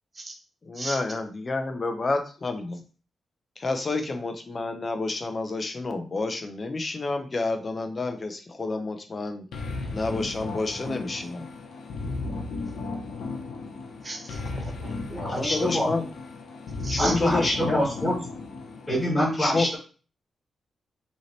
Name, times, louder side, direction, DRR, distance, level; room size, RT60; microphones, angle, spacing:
voice 1, 0.7-2.8 3.6-9.4 9.9-11.5 15.4-16.1 16.9-17.8 19.4-19.7, left 3 dB, 30° left, 6 dB, 0.8 m, -29 dB
sound 1, 9.5-19.1, left 3 dB, 85° left, 1.0 m, -35 dB
voice 2, 14.0-15.5 16.8-17.1, right 2 dB, 30° right, 2 dB, 1.0 m, -36 dB
voice 3, 15.1-15.9 17.0-18.1 18.9-19.8, equal, 10° left, -7 dB, 2.2 m, -25 dB
5.3 x 3.0 x 3.2 m, 0.38 s
wide cardioid pair, 135°, 0 cm